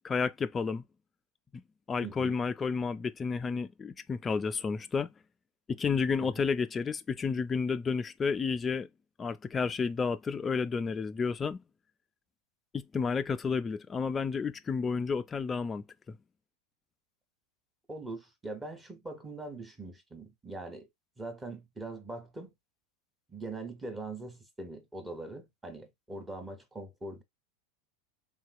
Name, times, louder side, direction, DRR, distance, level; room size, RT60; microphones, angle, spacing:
voice 1, 0.0-0.8 1.5-1.6 1.9-5.1 5.7-8.9 9.2-11.6 12.7-16.2, left 5 dB, 25° left, 0.3 m, -31 dB
voice 2, 2.0-2.4 6.2-6.5 17.9-20.9 21.2-22.5 23.3-27.2, right 2 dB, 15° right, 1.2 m, -42 dB
3.6 x 2.9 x 2.2 m
figure-of-eight pair, 85°, 0 cm